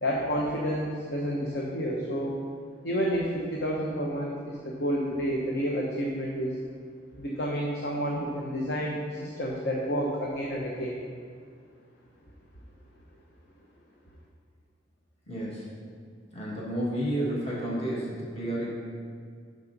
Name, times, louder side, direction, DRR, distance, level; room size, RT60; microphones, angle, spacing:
voice 1, 0.0-2.3 2.8-6.6 7.2-11.0, equal, 60° left, -2 dB, 0.9 m, -30 dB
voice 2, 15.3-15.7 16.3-18.8, right 1 dB, 35° left, -6 dB, 1.8 m, -31 dB
11.5 x 5.1 x 4.0 m, 2.1 s
head